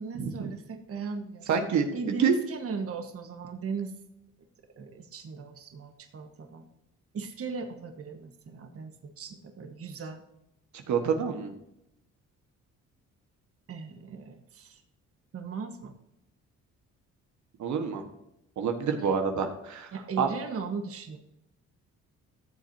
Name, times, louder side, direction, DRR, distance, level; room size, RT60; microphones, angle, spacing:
voice 1, 0.0-1.6 1.9-3.9 4.8-6.7 7.1-10.2 13.7-14.8 15.3-15.9 19.9-21.2, right 4 dB, 50° right, 5 dB, 1.3 m, -38 dB
voice 2, 1.5-1.9 2.2-2.4 10.7-11.5 17.6-18.0 18.6-19.9 20.2-20.3, right 6 dB, 70° right, 6 dB, 1.4 m, -27 dB
14.0 x 7.6 x 2.7 m, 0.85 s
cardioid pair, 90°, 30 cm